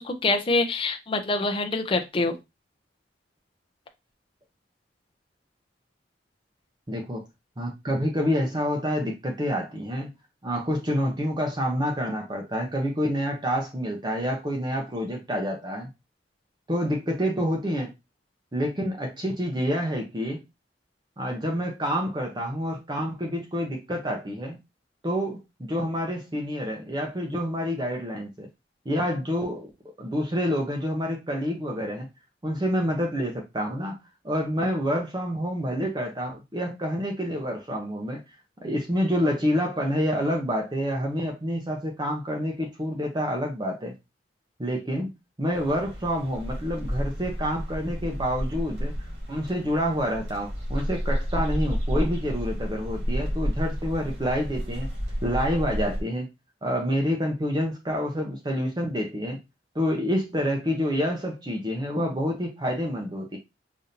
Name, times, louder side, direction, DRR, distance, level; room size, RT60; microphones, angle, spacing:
voice 1, 0.0-2.3, left 3 dB, 30° left, 0.6 m, -25 dB
voice 2, 6.9-7.3 7.6-10.1 10.4-15.9 16.7-17.9 18.5-20.4 21.2-24.6 25.0-28.5 28.9-29.7 30.0-32.1 32.4-34.0 34.2-38.2 38.6-43.9 44.6-48.9 49.3-54.9 55.2-56.3 56.6-59.4 59.7-63.4, equal, 25° right, 0.7 m, -28 dB
sound 1, 45.5-56.0, equal, 75° right, 2.1 m, -31 dB
5.1 x 2.7 x 2.7 m
head